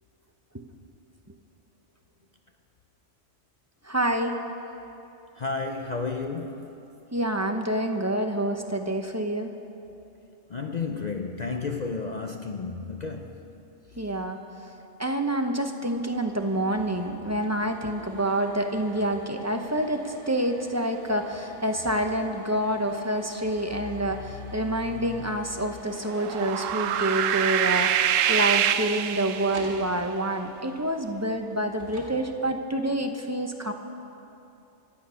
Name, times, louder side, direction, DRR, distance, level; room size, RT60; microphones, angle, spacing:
voice 1, 3.8-4.4 7.1-9.5 14.0-14.4 15.0-33.7, right 1 dB, 15° right, 4 dB, 0.7 m, -27 dB
voice 2, 5.4-6.9 10.5-13.5 25.0-25.3, left 4 dB, 45° left, 4 dB, 0.6 m, -32 dB
sound 1, 15.9-32.1, right 2 dB, 40° right, 2.3 m, -48 dB
sound 2, 26.1-29.8, right 10 dB, 90° right, 1.0 m, -25 dB
25.0 x 8.6 x 5.6 m, 2.9 s
omnidirectional pair, 1.3 m